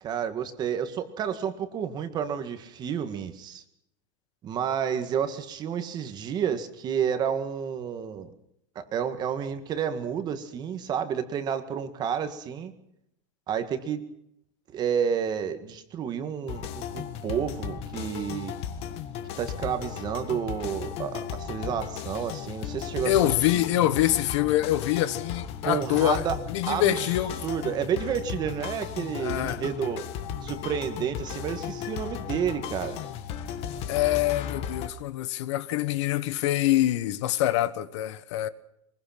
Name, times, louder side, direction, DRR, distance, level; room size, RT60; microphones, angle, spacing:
voice 1, 0.0-3.6 4.4-8.3 8.8-12.7 13.5-14.0 14.7-18.5 19.4-23.2 25.7-26.4 26.7-27.0 27.4-30.0 30.4-33.0, right 8 dB, 25° right, 1.8 m, -30 dB
sound 1, 16.5-34.9, left 8 dB, 35° left, 1.6 m, -36 dB
voice 2, 23.0-27.4 29.2-29.6 33.9-38.5, left 13 dB, 65° left, 1.3 m, -25 dB
23.5 x 21.5 x 6.0 m
supercardioid pair, 165°, 17 cm